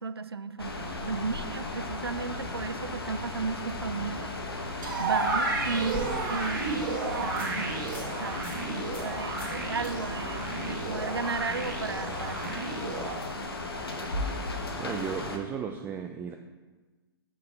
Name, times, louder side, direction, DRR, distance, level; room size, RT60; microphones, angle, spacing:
voice 1, 0.0-4.3 5.0-7.8 8.2-13.3, right 4 dB, 85° right, 14 dB, 0.4 m, -35 dB
sound 1, 0.6-15.4, left 2 dB, 75° left, 1.1 m, -36 dB
sound 2, 4.8-13.1, right 3 dB, 55° right, 1.6 m, -32 dB
sound 3, 5.2-6.5 6.9-7.0 7.4-7.5 7.8-8.1 8.4-8.6 8.9-9.1 9.4-9.6 9.8-9.9 13.0-13.1, left 1 dB, 10° left, 1.8 m, -42 dB
voice 2, 14.5-16.4, right 7 dB, 15° right, 5 dB, 0.4 m, -35 dB
6.6 x 5.7 x 5.4 m, 1.3 s
figure-of-eight pair, 115°, 13 cm